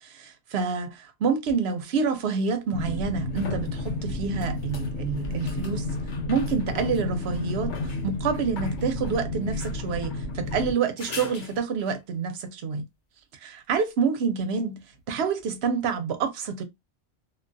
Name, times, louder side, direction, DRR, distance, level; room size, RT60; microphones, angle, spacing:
voice 1, 0.0-5.9 6.3-7.7 8.0-12.9 13.4-16.6, right 5 dB, 75° right, 0.9 m, -28 dB
sound 1, 1.5-1.6 2.8-12.0 15.4-15.5, left 2 dB, 55° left, 0.7 m, -43 dB
sound 2, 2.7-10.7, left 2 dB, 90° left, 1.0 m, -31 dB
2.4 x 2.3 x 2.5 m
omnidirectional pair, 1.1 m